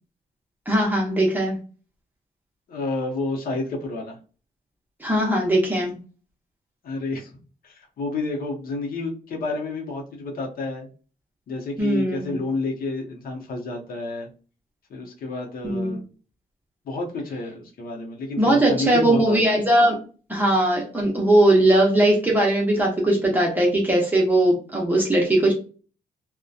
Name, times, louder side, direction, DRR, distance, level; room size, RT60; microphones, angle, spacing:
voice 1, 0.7-1.6 5.0-5.9 11.8-12.2 15.6-15.9 18.4-20.0 20.3-25.5, right 1 dB, 10° right, -2 dB, 0.6 m, -19 dB
voice 2, 2.7-4.2 6.8-7.4 7.6-10.9 11.5-14.3 14.9-16.1 16.8-19.6, left 3 dB, 70° left, 1 dB, 0.7 m, -30 dB
2.7 x 2.1 x 2.3 m, 0.37 s
wide cardioid pair, 155°, 16 cm